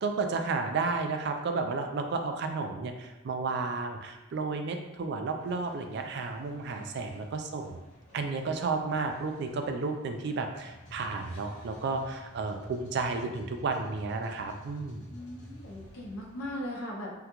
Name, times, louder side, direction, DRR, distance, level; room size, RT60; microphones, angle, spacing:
voice 1, 0.0-7.8 8.1-15.1, right 4 dB, 55° right, 5 dB, 0.3 m, -32 dB
sound 1, 5.4-16.7, equal, 35° left, 0.9 m, -51 dB
voice 2, 15.1-17.1, left 1 dB, 80° left, -3 dB, 0.6 m, -39 dB
3.7 x 2.2 x 2.9 m, 1.1 s
head